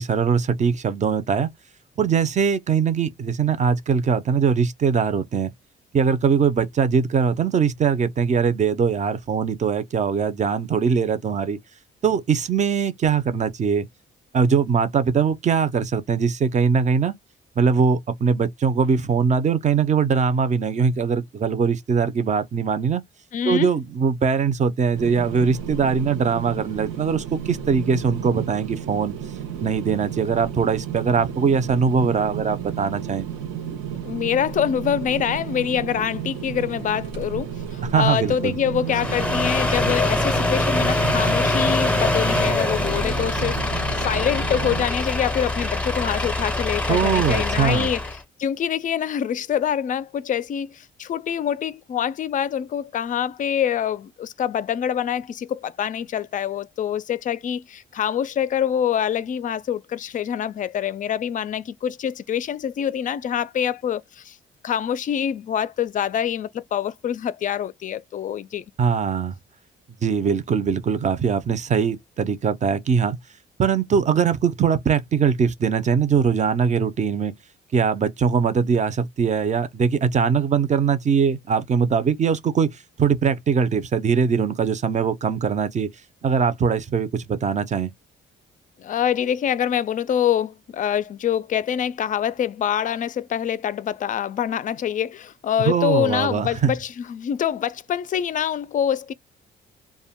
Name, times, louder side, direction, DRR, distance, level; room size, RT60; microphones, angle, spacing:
voice 1, 0.0-1.5 2.0-5.5 5.9-11.6 12.0-13.9 14.3-17.1 17.6-23.0 23.5-29.1 29.6-33.2 37.8-38.5 46.9-47.9 68.8-69.3 70.0-73.2 73.6-77.3 77.7-82.7 83.0-85.9 86.2-87.9 95.6-96.7, right 6 dB, 35° right, 0.5 m, -21 dB
voice 2, 23.3-23.7 33.6-48.0 48.4-64.4 64.6-68.6 88.8-99.1, left 9 dB, 40° left, 0.4 m, -25 dB
sound 1, 24.9-44.9, right 8 dB, 90° right, 0.7 m, -33 dB
sound 2, 38.9-48.2, left 2 dB, 5° left, 0.6 m, -24 dB
2.2 x 2.1 x 3.5 m
cardioid pair, 90°, 20 cm